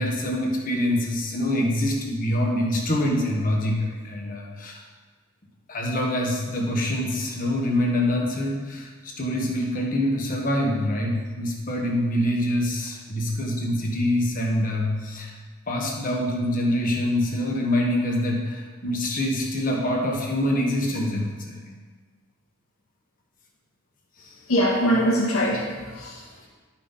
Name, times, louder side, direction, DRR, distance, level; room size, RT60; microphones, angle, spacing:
voice 1, 0.0-4.8 5.7-15.3 15.7-21.7 24.2-24.3, left 1 dB, 40° left, 0 dB, 1.4 m, -25 dB
voice 2, 24.5-26.5, equal, 90° left, -3 dB, 1.7 m, -23 dB
11.5 x 5.9 x 4.1 m, 1.4 s
head